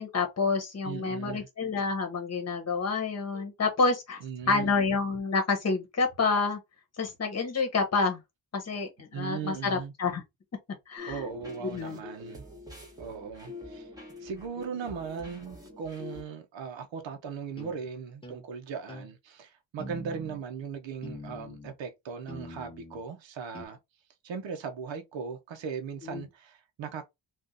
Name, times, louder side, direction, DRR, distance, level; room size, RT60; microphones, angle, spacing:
voice 1, 0.0-4.2 4.5-6.6 7.0-8.2 8.5-10.2 10.9-11.2 11.6-12.0 26.1-26.2, left 4 dB, 35° left, 1.1 m, -28 dB
voice 2, 0.8-1.5 4.2-4.7 9.1-9.9 11.1-12.4 13.0-13.9 14.2-23.8 24.2-27.1, right 6 dB, 80° right, 0.8 m, -38 dB
sound 1, 11.0-16.2, left 2 dB, 10° right, 1.0 m, -45 dB
sound 2, 17.6-17.8 18.2-18.4 18.9-19.1 19.8-20.4 21.0-21.7 22.3-23.0 23.5-23.7, left 1 dB, 10° left, 0.7 m, -43 dB
2.7 x 2.5 x 3.6 m
wide cardioid pair, 145°, 45 cm